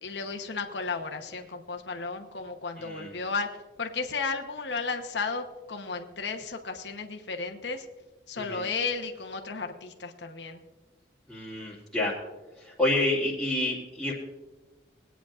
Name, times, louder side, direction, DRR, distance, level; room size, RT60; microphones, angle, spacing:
voice 1, 0.0-3.5 3.8-7.8 8.3-10.6, left 4 dB, 70° left, 4 dB, 1.0 m, -34 dB
voice 2, 2.8-3.1 8.4-8.6 11.3-12.2 12.6-14.1, left 1 dB, ahead, -10 dB, 2.4 m, -29 dB
21.0 x 9.2 x 2.5 m, 1.1 s
head